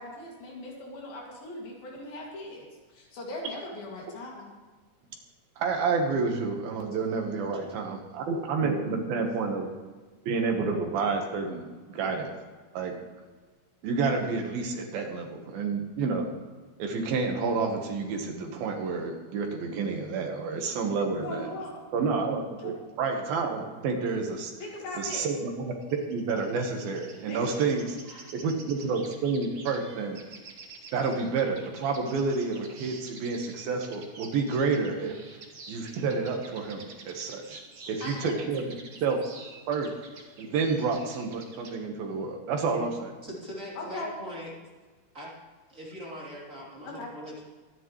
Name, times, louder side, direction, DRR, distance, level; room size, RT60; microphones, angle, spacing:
voice 1, 0.0-4.5 21.2-21.8 22.6-22.7 24.6-25.3 27.3-27.5 38.0-38.3 43.8-44.1 46.8-47.1, left 2 dB, 70° left, -2 dB, 4.2 m, -39 dB
voice 2, 5.6-9.7 10.3-12.3 12.7-13.0 13.8-16.3 16.8-21.5 21.9-24.5 25.0-25.8 26.1-28.0 28.3-30.2 30.9-35.1 35.7-37.6 37.9-38.7 39.0-39.2 39.7-39.9 40.4-43.1, right 4 dB, 75° right, 3 dB, 3.1 m, -29 dB
voice 3, 7.1-8.0 8.6-9.2 21.5-21.6 28.1-28.4 28.8-28.9 42.7-42.9 43.2-44.5 45.1-45.3 45.7-47.4, right 1 dB, 20° right, -6 dB, 3.3 m, -41 dB
sound 1, 25.8-41.8, right 4 dB, 50° right, 1.4 m, -49 dB
24.0 x 10.5 x 3.2 m, 1.4 s
omnidirectional pair, 4.4 m